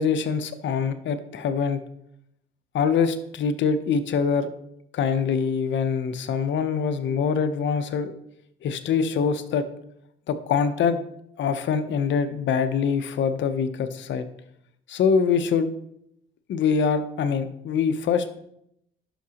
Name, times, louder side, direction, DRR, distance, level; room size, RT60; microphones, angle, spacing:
voice 1, 0.0-1.8 2.7-4.5 4.9-8.1 8.6-9.6 10.3-11.0 11.4-14.3 14.9-15.7 16.5-18.4, left 6 dB, 70° left, 10 dB, 0.7 m, -24 dB
11.0 x 5.8 x 2.9 m, 0.77 s
cardioid pair, 90°, 20 cm